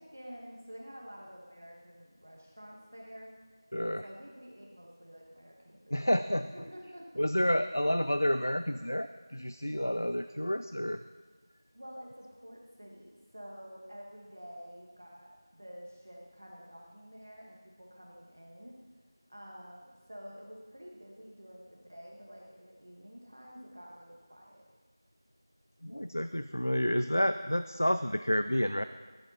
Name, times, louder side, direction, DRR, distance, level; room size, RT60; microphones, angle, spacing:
voice 1, 0.0-3.3 4.0-6.1 6.5-7.3 11.7-18.7 19.3-24.7, equal, 30° right, -1 dB, 1.5 m, -49 dB
voice 2, 3.7-4.0 5.9-6.5 7.2-11.0 25.8-28.8, equal, 45° left, 11 dB, 0.4 m, -29 dB
16.5 x 10.5 x 4.2 m, 1.4 s
figure-of-eight pair, 180°, 2 cm